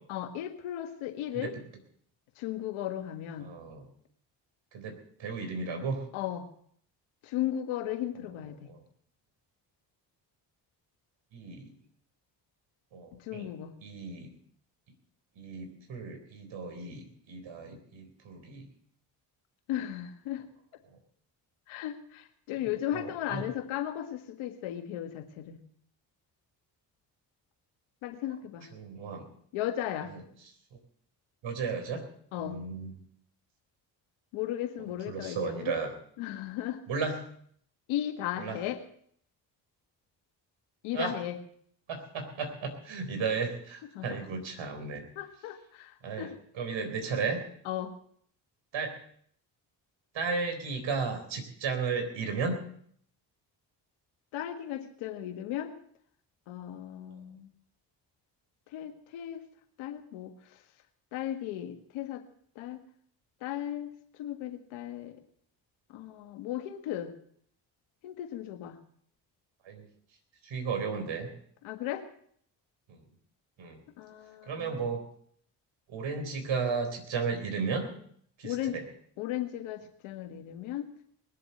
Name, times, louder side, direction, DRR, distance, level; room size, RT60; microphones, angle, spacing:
voice 1, 0.1-1.5 2.4-3.5 6.1-6.4 7.2-8.7 13.2-13.7 19.7-20.5 21.7-25.6 28.0-28.7 29.5-30.1 32.3-32.6 34.3-35.7 36.2-36.8 37.9-38.8 40.8-41.4 43.9-44.2 45.1-46.4 47.6-47.9 54.3-55.7 56.5-57.5 58.7-59.4 59.8-60.3 61.1-62.2 62.5-62.8 63.4-65.2 65.9-67.1 68.0-68.8 71.6-72.0 74.0-74.8 78.4-78.8 79.2-80.9, left 12 dB, 85° left, 6 dB, 1.7 m, -36 dB
voice 2, 3.4-3.9 4.7-6.0 8.2-8.3 8.7-8.8 11.3-11.7 12.9-13.5 13.8-14.3 15.4-18.7 22.6-22.7 22.9-23.5 28.7-29.3 30.1-30.2 31.4-32.1 32.4-33.0 35.1-35.9 36.9-37.3 38.4-38.6 40.9-41.1 41.9-45.1 46.0-47.4 48.7-49.0 50.1-52.6 69.6-69.9 70.4-71.3 72.9-73.0 73.6-73.8 74.5-75.0 75.9-77.9 78.4-78.9, right 5 dB, 70° right, 5 dB, 4.0 m, -34 dB
20.5 x 7.8 x 7.8 m, 0.63 s
hypercardioid pair, 50°, 48 cm